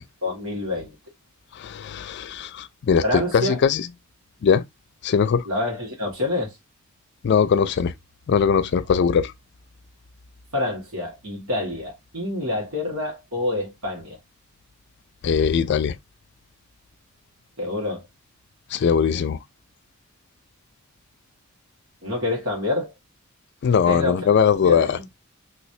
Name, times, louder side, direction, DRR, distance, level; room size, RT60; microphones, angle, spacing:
voice 1, 0.2-1.0 3.0-3.6 5.5-6.5 10.5-14.2 17.6-18.0 22.0-22.9 23.9-24.3 24.6-25.1, left 2 dB, 80° right, 1.9 m, -27 dB
voice 2, 1.6-3.9 4.4-4.6 5.0-5.5 7.2-7.9 8.3-9.3 15.2-16.0 18.7-19.4 23.6-25.0, left 6 dB, 55° left, 0.3 m, -20 dB
3.2 x 3.1 x 2.7 m
head